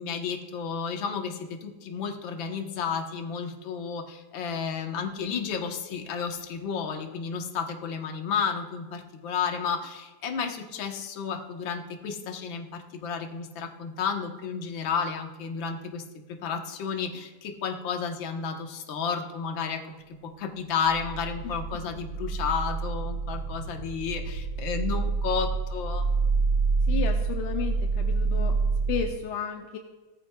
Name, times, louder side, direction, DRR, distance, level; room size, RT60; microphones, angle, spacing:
voice 1, 0.0-16.0 16.3-19.8 20.2-26.1, left 6 dB, 60° left, 3 dB, 1.3 m, -32 dB
sound 1, 20.7-29.1, right 4 dB, 55° right, 1.9 m, -27 dB
voice 2, 26.9-28.6 28.9-29.8, left 7 dB, 80° left, 3 dB, 2.2 m, -33 dB
18.5 x 14.0 x 2.3 m, 1.2 s
omnidirectional pair, 3.6 m